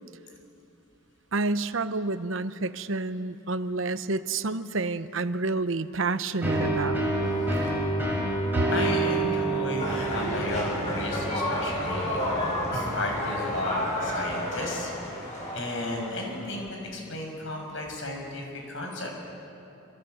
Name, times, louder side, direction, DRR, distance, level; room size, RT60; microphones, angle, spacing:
voice 1, 1.3-7.0 8.5-8.6, right 3 dB, 65° right, 12 dB, 0.9 m, -29 dB
sound 1, 6.4-13.9, right 2 dB, 10° right, 6.3 m, -29 dB
voice 2, 8.7-14.9 15.5-19.1, left 2 dB, 65° left, 1 dB, 6.4 m, -34 dB
sound 2, 9.8-16.6, left 1 dB, 35° left, 7.5 m, -31 dB
26.0 x 26.0 x 8.0 m, 2.7 s
head